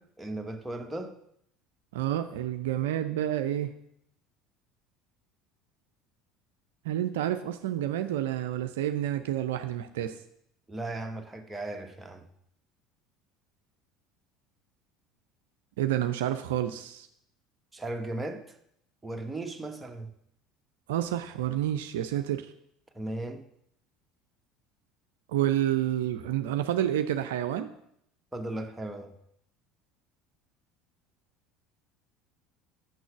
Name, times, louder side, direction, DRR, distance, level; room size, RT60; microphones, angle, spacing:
voice 1, 0.2-1.2 10.7-12.3 17.7-18.6 19.0-20.1 22.9-23.4 28.3-29.2, right 2 dB, 10° right, 1.1 m, -36 dB
voice 2, 1.9-3.7 6.8-10.2 15.8-17.1 20.9-22.5 25.3-27.7, right 12 dB, 70° right, 0.4 m, -29 dB
6.8 x 6.2 x 6.8 m
figure-of-eight pair, 65°, 0 cm